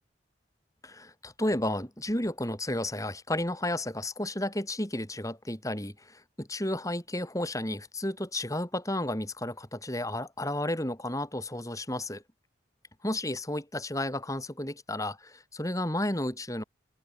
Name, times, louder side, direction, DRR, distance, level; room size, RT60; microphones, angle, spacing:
voice 1, 0.8-12.2 13.0-16.6, left 1 dB, 20° left, 6.0 m, -32 dB
head